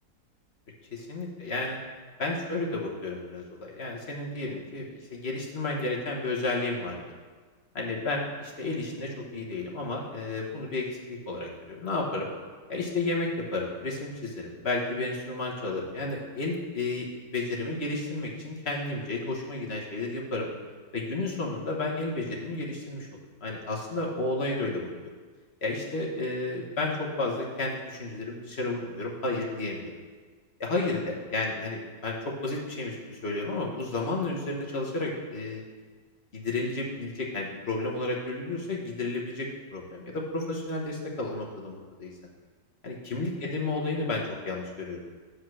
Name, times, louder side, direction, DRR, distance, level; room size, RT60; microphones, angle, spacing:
voice 1, 0.9-1.8 2.2-7.2 7.7-12.3 12.7-20.5 20.9-23.1 23.4-24.9 25.6-29.9 30.6-35.6 36.3-42.1 42.8-45.1, left 2 dB, 40° left, -2 dB, 1.2 m, -32 dB
8.3 x 5.0 x 6.2 m, 1.5 s
omnidirectional pair, 2.0 m